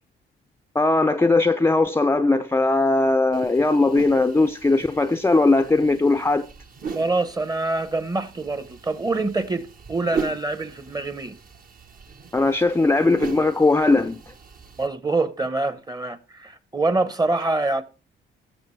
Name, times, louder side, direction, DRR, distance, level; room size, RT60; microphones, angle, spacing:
voice 1, 0.7-6.5 12.3-14.2, left 2 dB, 10° left, 0.5 m, -19 dB
sound 1, 3.3-14.9, right 5 dB, 45° right, 1.1 m, -38 dB
voice 2, 6.9-11.4 14.8-17.8, right 2 dB, 20° right, 0.9 m, -25 dB
15.5 x 6.7 x 3.2 m
cardioid pair, 90°, 20 cm